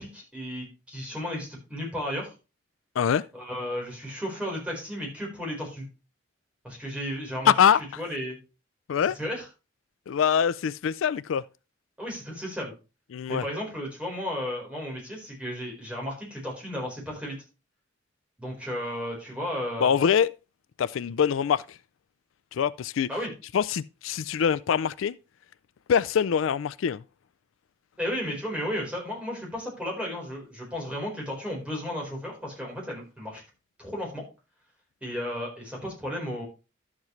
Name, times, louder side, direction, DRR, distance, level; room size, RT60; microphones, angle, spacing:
voice 1, 0.0-2.3 3.3-5.9 6.6-7.5 8.0-8.4 9.2-9.4 12.0-12.7 13.3-17.4 18.4-19.9 23.1-23.3 28.0-33.4 33.8-34.2 35.0-36.4, equal, 5° right, 4.3 m, -34 dB
voice 2, 7.4-7.8 8.9-9.2 10.1-11.4 13.1-13.4 19.8-20.3 20.8-21.8 22.5-23.1 23.5-25.1 25.9-27.0, left 7 dB, 85° left, 0.4 m, -24 dB
12.0 x 7.3 x 3.1 m
head